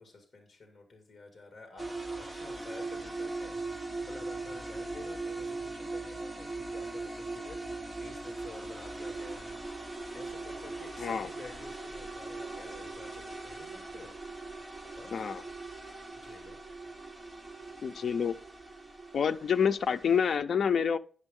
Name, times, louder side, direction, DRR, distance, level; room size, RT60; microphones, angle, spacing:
voice 1, 0.0-1.9 2.3-14.2 15.0-15.2 16.2-16.6, left 3 dB, 25° left, 2.0 m, -51 dB
sound 1, 1.8-20.4, right 3 dB, 15° right, 0.9 m, -40 dB
voice 2, 11.0-11.3 15.1-15.4 17.8-18.4 19.1-21.0, left 7 dB, 60° left, 0.4 m, -27 dB
11.0 x 6.2 x 3.6 m
wide cardioid pair, 135°, 0 cm